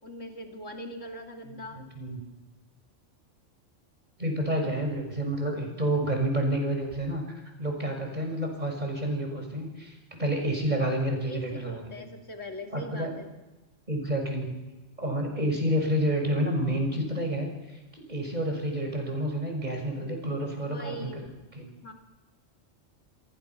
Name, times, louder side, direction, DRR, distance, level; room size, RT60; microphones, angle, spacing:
voice 1, 0.0-1.8 4.6-4.7 11.2-13.3 20.6-21.3 21.8-21.9, equal, 90° left, 2 dB, 3.3 m, -41 dB
voice 2, 1.5-2.2 4.2-12.0 12.7-13.1 13.9-14.6 15.0-17.5 17.9-21.2 21.5-21.7, right 1 dB, 35° right, 2 dB, 6.4 m, -29 dB
28.5 x 22.0 x 5.9 m, 1.1 s
omnidirectional pair, 1.3 m